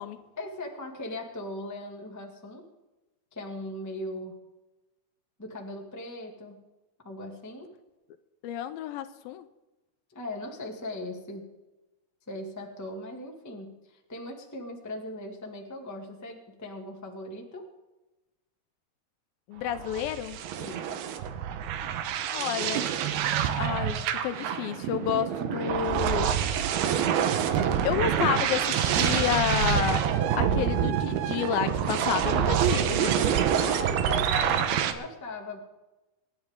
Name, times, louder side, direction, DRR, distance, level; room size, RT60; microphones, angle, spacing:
voice 1, 0.4-2.6 3.3-4.3 5.4-6.6 7.0-7.7 10.1-11.5 12.3-17.6 20.6-21.1 33.6-35.6, left 1 dB, 10° left, 1 dB, 0.7 m, -39 dB
voice 2, 8.4-9.5 19.5-20.4 22.3-22.9 23.6-26.3 27.8-30.1 30.3-33.2, left 10 dB, 80° left, 11 dB, 2.3 m, -30 dB
sound 1, 19.7-34.9, right 9 dB, 85° right, 3.0 m, -26 dB
25.5 x 11.5 x 3.7 m, 1.1 s
omnidirectional pair, 4.4 m